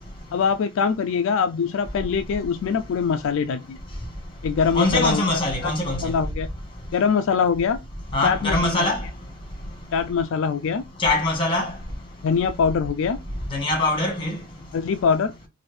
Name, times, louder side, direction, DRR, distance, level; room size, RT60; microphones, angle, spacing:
voice 1, 0.3-3.8 4.4-5.7 6.0-6.5 6.9-7.8 8.2-8.9 9.9-10.8 12.2-13.2 14.7-15.3, left 6 dB, 65° left, 0.3 m, -23 dB
voice 2, 4.7-6.0 8.1-9.0 11.0-11.7 13.5-14.4, left 2 dB, 25° left, 1.5 m, -22 dB
4.3 x 2.6 x 3.1 m
head